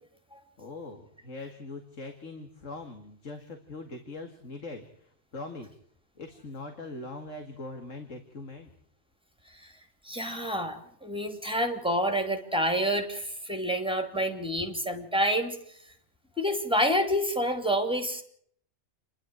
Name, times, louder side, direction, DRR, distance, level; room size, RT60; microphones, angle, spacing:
voice 1, 0.6-5.8 6.2-8.7, left 2 dB, 85° left, 5 dB, 2.4 m, -42 dB
voice 2, 10.0-15.6 16.4-18.2, equal, 5° right, 5 dB, 2.8 m, -28 dB
28.5 x 11.5 x 9.1 m, 0.66 s
omnidirectional pair, 1.3 m